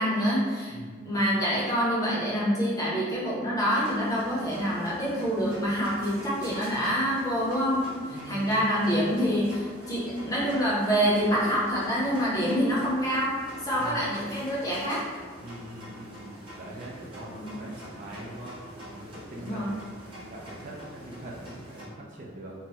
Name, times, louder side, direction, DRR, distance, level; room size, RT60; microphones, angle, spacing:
voice 1, 0.0-0.8 1.0-7.8 8.1-15.0 17.4-17.5 19.4-19.7, equal, 20° left, -7 dB, 0.7 m, -26 dB
voice 2, 0.7-1.2 5.4-5.5 8.1-8.6 13.8-14.2 15.4-22.5, right 1 dB, 40° right, -4 dB, 0.4 m, -43 dB
sound 1, 3.6-21.8, equal, 25° right, 0.9 m, -45 dB
3.1 x 2.2 x 2.7 m, 1.5 s
head